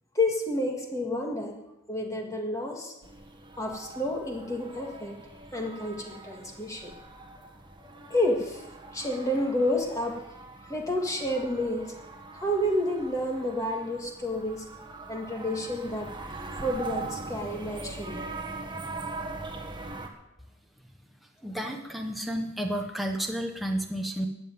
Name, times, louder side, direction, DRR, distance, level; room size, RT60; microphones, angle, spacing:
voice 1, 0.2-1.5 1.9-3.0 3.6-5.2 5.5-6.9 7.8-8.6 8.9-10.2 10.6-11.9 12.3-14.7 15.1-18.2, left 1 dB, 15° left, 1 dB, 1.9 m, -30 dB
sound 1, 3.0-20.1, right 3 dB, 20° right, 1.4 m, -42 dB
voice 2, 21.4-24.3, equal, ahead, 1 dB, 0.9 m, -31 dB
13.5 x 7.7 x 9.3 m, 0.94 s
head